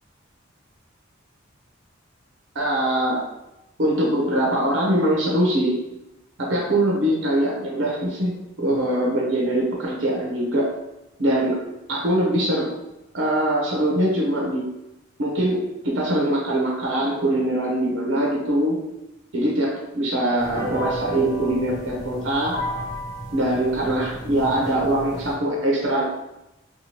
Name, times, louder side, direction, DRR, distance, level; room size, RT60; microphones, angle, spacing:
voice 1, 2.5-3.2 3.8-5.8 6.4-10.7 11.2-11.6 11.9-12.7 13.1-14.6 15.2-18.8 19.3-22.6 23.3-26.0, right 1 dB, 70° right, -3 dB, 0.7 m, -22 dB
sound 1, 20.4-25.3, equal, 50° left, 1.1 m, -33 dB
2.8 x 2.2 x 3.0 m, 0.93 s
head